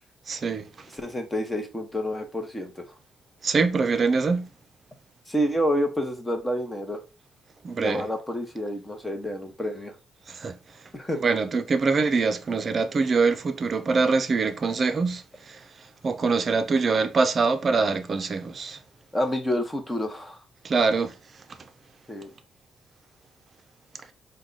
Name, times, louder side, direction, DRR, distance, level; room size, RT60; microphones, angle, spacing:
voice 1, 0.3-0.7 3.4-4.5 7.6-8.1 10.3-10.6 11.2-15.6 16.0-18.8 20.6-21.2, right 4 dB, 45° right, 0.6 m, -24 dB
voice 2, 0.9-2.8 5.3-7.0 7.8-10.0 10.9-11.2 19.1-20.4 22.1-22.3, equal, 15° left, 1.0 m, -28 dB
4.6 x 2.3 x 3.8 m
cardioid pair, 90°, 0 cm